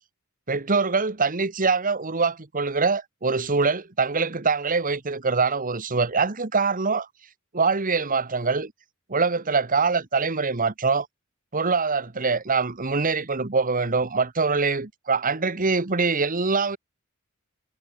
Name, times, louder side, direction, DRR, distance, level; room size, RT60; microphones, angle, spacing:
voice 1, 0.5-7.1 7.5-8.7 9.1-11.1 11.5-16.8, right 4 dB, 40° right, 1.4 m, -24 dB
head